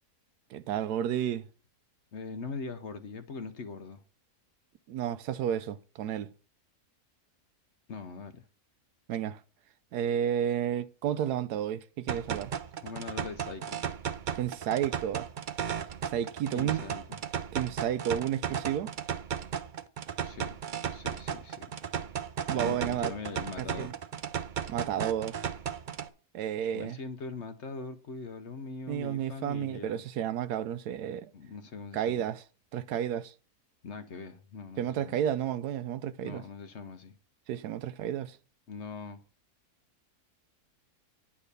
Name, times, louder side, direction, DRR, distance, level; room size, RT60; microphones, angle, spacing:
voice 1, 0.5-1.4 4.9-6.3 9.1-9.4 9.9-12.5 14.3-15.3 16.1-16.8 17.5-18.9 22.5-23.1 23.6-23.9 24.7-25.4 26.3-27.0 28.9-31.3 31.9-32.4 32.7-33.3 34.8-36.4 37.5-38.4, right 10 dB, 90° right, 1.2 m, -31 dB
voice 2, 2.1-4.0 7.9-8.5 12.8-13.8 16.5-17.2 20.2-20.6 20.9-21.7 22.5-23.9 26.7-30.0 31.3-32.3 33.8-35.1 36.2-37.2 38.7-39.2, left 4 dB, 55° left, 1.0 m, -41 dB
sound 1, 12.1-26.1, right 8 dB, 65° right, 0.4 m, -35 dB
10.0 x 4.8 x 6.8 m
omnidirectional pair, 1.6 m